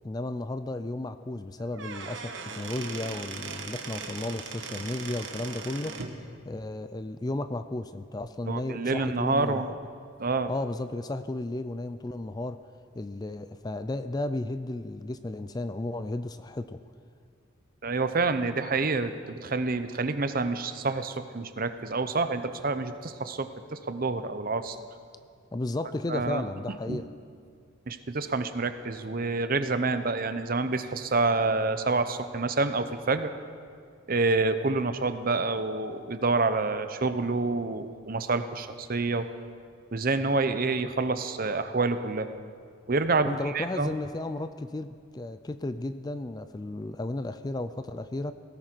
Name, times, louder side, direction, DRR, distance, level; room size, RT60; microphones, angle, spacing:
voice 1, 0.0-6.0 6.5-9.6 10.5-12.6 12.9-16.8 25.5-27.1 43.2-48.3, left 2 dB, 20° left, 11 dB, 0.4 m, -34 dB
Squeak / Wood, 1.6-6.2, right 5 dB, 60° right, 1.4 m, -39 dB
voice 2, 8.5-9.7 10.2-10.5 17.8-24.8 26.1-26.4 26.9-27.0 27.9-33.3 34.1-39.3 39.9-42.3 42.9-43.9, right 3 dB, 45° right, 10 dB, 0.8 m, -28 dB
18.5 x 17.0 x 4.6 m, 2.2 s
head